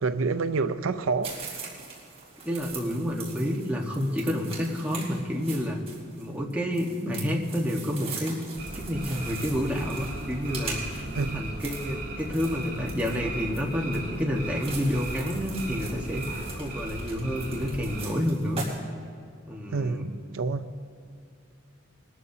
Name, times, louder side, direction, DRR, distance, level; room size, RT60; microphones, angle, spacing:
voice 1, 0.0-1.7 11.1-11.4 19.7-20.7, right 4 dB, 90° right, 0.5 m, -28 dB
sound 1, 1.2-18.8, right 4 dB, 30° right, 3.3 m, -42 dB
voice 2, 2.4-5.8 6.2-8.4 8.7-16.3 16.5-18.6 19.5-20.1, equal, 5° right, 1.3 m, -29 dB
sound 2, 8.6-18.0, right 1 dB, 55° right, 3.5 m, -37 dB
21.0 x 13.5 x 2.8 m
head